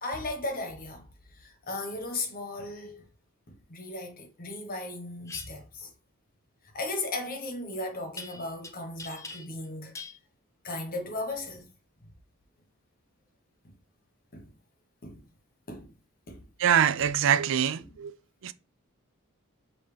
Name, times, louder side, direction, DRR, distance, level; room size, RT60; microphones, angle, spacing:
voice 1, 0.0-1.1 1.4-3.0 3.5-5.9 6.7-10.0 10.6-11.6 13.6-13.7 14.3-14.5 15.0-15.2 15.7-15.9 16.3-16.4 17.8-17.9, left 2 dB, 40° left, 1.1 m, -36 dB
sound 1, 5.3-5.5 8.2-8.7 9.0-9.7 10.0-10.2, left 3 dB, 15° left, 0.5 m, -42 dB
voice 2, 16.6-18.1 18.4-18.5, right 9 dB, 60° right, 0.4 m, -24 dB
5.3 x 2.9 x 3.3 m
head